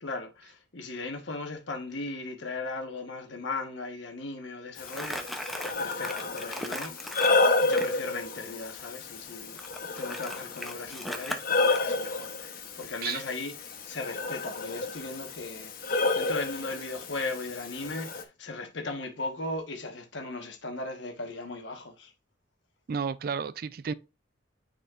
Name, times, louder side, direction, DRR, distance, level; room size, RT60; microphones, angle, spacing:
voice 1, 0.0-7.0 7.6-9.6 10.0-22.1, left 3 dB, 75° left, 1.2 m, -37 dB
Breathing, 4.8-18.2, left 3 dB, 50° left, 0.8 m, -31 dB
Crumpling crinkling, 4.9-7.9 9.6-11.8, equal, ahead, 0.6 m, -38 dB
voice 2, 22.9-23.9, right 6 dB, 50° right, 0.3 m, -32 dB
9.4 x 4.3 x 2.4 m
head